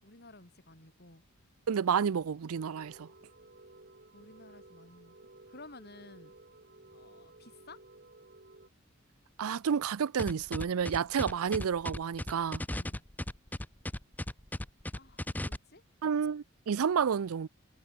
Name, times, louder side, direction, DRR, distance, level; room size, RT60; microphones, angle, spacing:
voice 1, 0.0-1.2 4.1-5.2 5.5-6.3 6.9-7.8 12.7-13.0 14.9-15.8, left 2 dB, 50° left, 5.9 m, -54 dB
voice 2, 1.7-3.1 9.4-12.6 16.0-17.5, right 7 dB, 80° right, 0.5 m, -30 dB
sound 1, 2.5-8.7, right 2 dB, 45° right, 2.8 m, -56 dB
sound 2, 10.2-15.6, left 1 dB, 10° left, 0.7 m, -36 dB
head